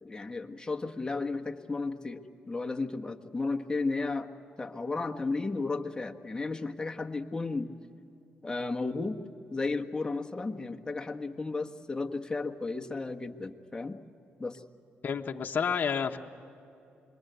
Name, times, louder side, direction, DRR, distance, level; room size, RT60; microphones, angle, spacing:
voice 1, 0.0-2.2 2.5-4.3 4.6-7.7 8.4-9.2 9.5-14.0 14.4-14.6, left 3 dB, 20° left, 4 dB, 1.6 m, -33 dB
voice 2, 15.0-16.2, left 6 dB, 50° left, 2 dB, 1.2 m, -30 dB
26.5 x 23.0 x 8.2 m, 2.6 s
cardioid pair, 70°, 4 cm